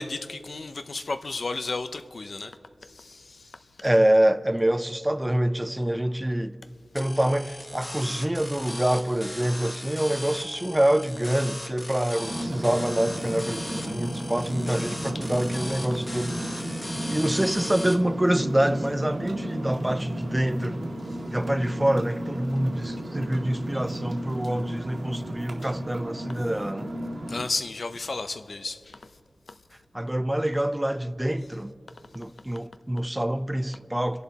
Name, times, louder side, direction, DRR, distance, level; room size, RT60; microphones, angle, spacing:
voice 1, 0.0-3.7 14.0-14.2 16.1-16.2 25.6-25.7 27.3-29.1 29.5-29.6, left 3 dB, 70° left, 0.6 m, -34 dB
voice 2, 3.8-6.6 6.9-16.6 17.1-20.8 21.2-27.0 29.9-31.7 32.1-34.2, right 1 dB, 15° right, 0.6 m, -26 dB
sound 1, 7.0-18.0, left 1 dB, 30° left, 1.4 m, -38 dB
sound 2, 12.2-27.4, right 1 dB, 80° right, 1.9 m, -34 dB
27.5 x 11.0 x 4.2 m
wide cardioid pair, 85°, 0 cm